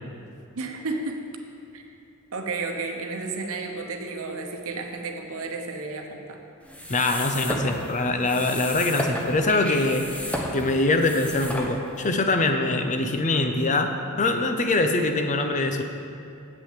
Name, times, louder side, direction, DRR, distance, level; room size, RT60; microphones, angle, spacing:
voice 1, 0.5-1.3 1.7-1.8 2.3-6.4, right 3 dB, 70° right, 4 dB, 1.0 m, -32 dB
sound 1, 6.6-12.1, left 1 dB, 5° left, 0.9 m, -33 dB
voice 2, 6.9-10.1 10.5-15.8, left 2 dB, 35° left, 6 dB, 0.6 m, -23 dB
8.3 x 6.1 x 7.5 m, 2.7 s
head